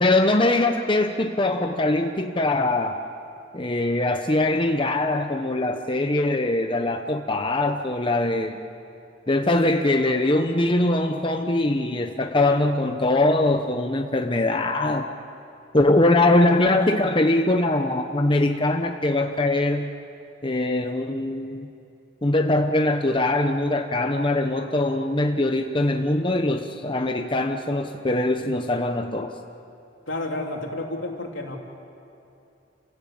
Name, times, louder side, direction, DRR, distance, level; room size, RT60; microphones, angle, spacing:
voice 1, 0.0-3.0 3.5-8.6 9.3-15.0 15.7-19.9 20.4-21.7 22.2-29.3, left 2 dB, 25° left, 4 dB, 0.9 m, -22 dB
voice 2, 30.1-31.6, left 2 dB, 80° left, 0 dB, 3.4 m, -30 dB
29.0 x 16.5 x 8.7 m, 2.7 s
head